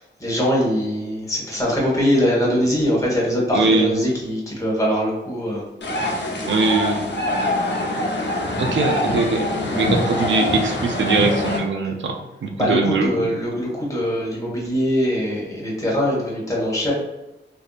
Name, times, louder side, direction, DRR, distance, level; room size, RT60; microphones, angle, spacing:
voice 1, 0.0-5.6 12.6-16.9, equal, 15° left, -5 dB, 1.3 m, -22 dB
voice 2, 3.5-3.9 6.5-7.1 8.6-9.5 9.7-13.3, right 3 dB, 75° right, 3 dB, 0.5 m, -21 dB
sound 1, 5.8-11.6, left 1 dB, 65° left, 0.8 m, -24 dB
3.6 x 2.7 x 2.4 m, 1.0 s
wide cardioid pair, 85°, 20 cm